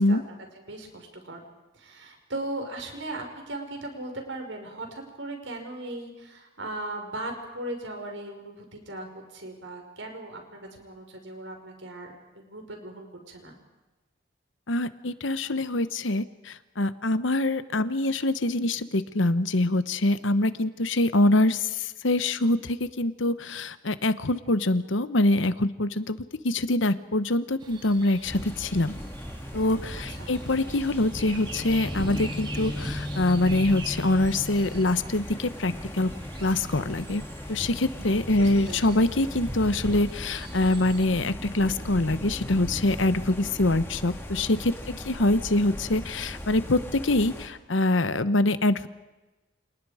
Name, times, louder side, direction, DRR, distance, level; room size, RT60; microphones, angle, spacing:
voice 1, 0.0-1.4 1.7-13.6 29.9-30.3 38.4-38.8 44.9-45.0, right 2 dB, 75° right, 3 dB, 5.1 m, -38 dB
voice 2, 14.7-26.2 26.4-28.9 29.5-36.1 36.4-37.2 37.5-44.7 45.0-48.9, left 2 dB, 75° left, 13 dB, 1.1 m, -24 dB
sound 1, 27.6-41.1, right 3 dB, 25° right, 2.0 m, -46 dB
sound 2, 28.2-47.5, equal, 10° left, 2.3 m, -38 dB
Guitar, 31.5-39.3, left 2 dB, 50° right, 4.4 m, -40 dB
29.5 x 27.0 x 5.0 m, 1.1 s
head